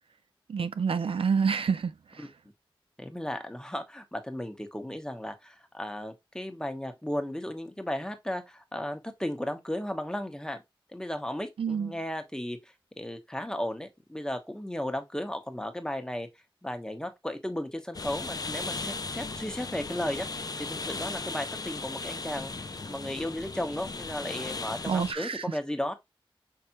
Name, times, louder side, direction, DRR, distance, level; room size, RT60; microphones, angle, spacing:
voice 1, 0.5-1.9 11.6-11.9 24.9-25.4, right 6 dB, 75° right, 0.3 m, -27 dB
voice 2, 3.0-10.6 10.9-12.6 13.0-16.3 16.6-20.3 20.6-22.5 22.9-25.9, left 1 dB, 10° left, 0.9 m, -35 dB
sound 1, 17.9-25.1, left 3 dB, 45° left, 0.5 m, -37 dB
5.6 x 3.3 x 2.9 m
wide cardioid pair, 70°, 9 cm